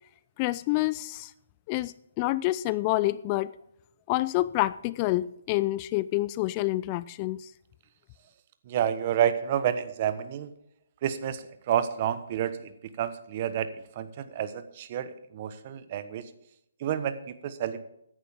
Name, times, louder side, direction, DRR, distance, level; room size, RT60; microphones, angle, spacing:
voice 1, 0.4-1.3 1.7-3.5 4.1-7.5, left 18 dB, 30° left, 19 dB, 0.4 m, -28 dB
voice 2, 8.7-10.5 11.0-12.7 13.0-13.7 14.0-16.3 16.8-17.8, right 10 dB, 40° right, 12 dB, 1.2 m, -29 dB
15.5 x 11.0 x 3.6 m, 0.79 s
hypercardioid pair, 145°, 0 cm